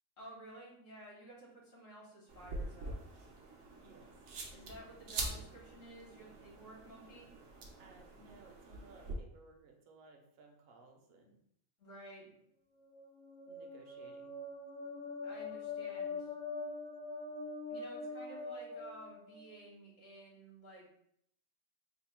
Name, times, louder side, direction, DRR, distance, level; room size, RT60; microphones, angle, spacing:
voice 1, 0.2-3.0 4.5-7.3 11.8-12.3 15.2-16.3 17.7-20.9, right 1 dB, 90° left, -5 dB, 1.8 m, -53 dB
sound 1, 2.3-9.1, right 2 dB, 85° right, 1.1 m, -45 dB
voice 2, 3.7-4.1 7.8-11.4 13.5-14.3, right 3 dB, 60° right, 2 dB, 0.8 m, -60 dB
sound 2, 12.8-19.7, left 3 dB, 60° left, 0.6 m, -43 dB
3.9 x 2.0 x 4.2 m, 0.72 s
omnidirectional pair, 1.3 m